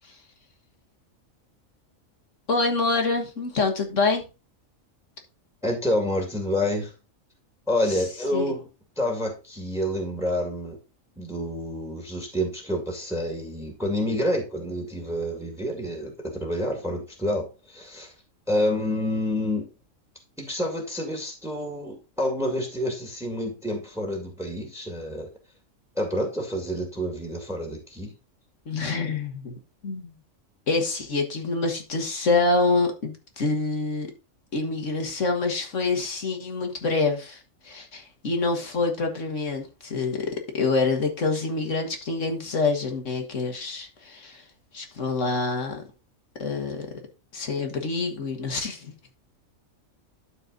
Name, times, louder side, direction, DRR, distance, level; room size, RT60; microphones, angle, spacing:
voice 1, 2.5-4.3 7.9-8.0 8.3-8.5 28.7-30.1 30.7-34.1 34.5-37.4 37.6-40.3 40.5-44.4 44.7-45.8 46.4-47.0 47.3-48.9, left 3 dB, 65° left, 2.0 m, -26 dB
voice 2, 5.6-6.9 7.7-8.7 9.0-10.8 11.2-18.1 18.5-19.7 20.4-25.3 26.0-28.1, left 1 dB, ahead, 2.2 m, -28 dB
12.0 x 4.5 x 3.9 m
omnidirectional pair, 1.4 m